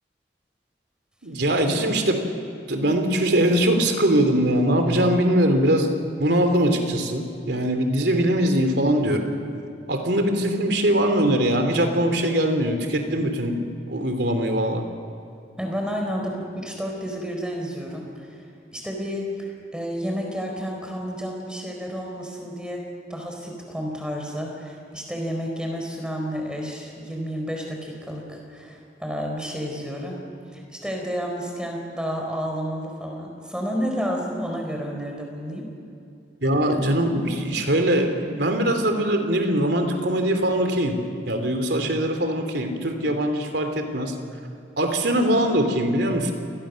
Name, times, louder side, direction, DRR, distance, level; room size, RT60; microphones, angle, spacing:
voice 1, 1.2-2.3 2.7-5.9 6.2-9.3 9.9-14.9 36.4-41.0 41.3-44.2 44.8-46.3, right 1 dB, 70° right, 6 dB, 3.0 m, -22 dB
voice 2, 15.6-22.8 23.1-30.2 30.5-35.7, equal, 5° right, 1 dB, 4.4 m, -31 dB
28.5 x 20.5 x 6.4 m, 2.7 s
head